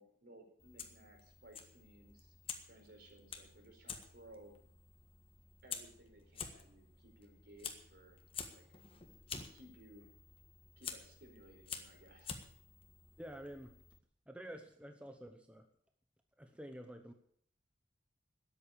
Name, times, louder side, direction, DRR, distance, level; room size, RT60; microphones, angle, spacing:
voice 1, 0.0-2.3 2.6-4.6 5.6-8.2 8.5-8.8 9.3-10.1 10.8-12.4, right 1 dB, 55° right, 3 dB, 4.8 m, -60 dB
Fire, 0.6-14.0, left 6 dB, 30° left, 1.6 m, -50 dB
voice 2, 13.2-13.8 14.3-15.7 16.4-17.1, equal, 5° right, 5 dB, 0.9 m, -49 dB
13.0 x 10.0 x 8.5 m, 0.65 s
head